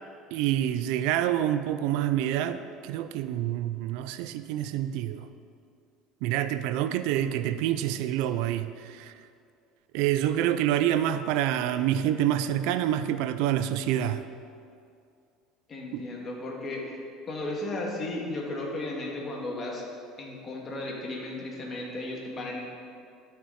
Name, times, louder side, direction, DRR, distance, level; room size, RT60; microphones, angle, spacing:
voice 1, 0.3-5.3 6.2-9.1 9.9-14.3 15.9-16.1, right 11 dB, 75° right, 12 dB, 0.4 m, -27 dB
voice 2, 15.7-17.0 17.3-19.8 20.2-22.7, left 2 dB, 35° left, -1 dB, 1.9 m, -35 dB
12.5 x 5.9 x 4.2 m, 2.4 s
supercardioid pair, 110°, 0 cm